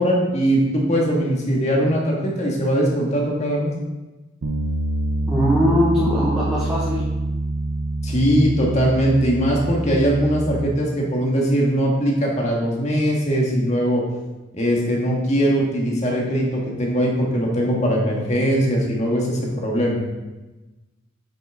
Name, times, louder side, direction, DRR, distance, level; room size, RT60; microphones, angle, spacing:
voice 1, 0.0-3.7 8.0-14.0 14.5-20.0, equal, 35° left, -2 dB, 1.8 m, -20 dB
Bass guitar, 4.4-10.7, right 2 dB, 80° right, 0.7 m, -25 dB
voice 2, 5.3-7.0, equal, 5° right, -9 dB, 1.3 m, -20 dB
8.9 x 6.3 x 3.7 m, 1.1 s
head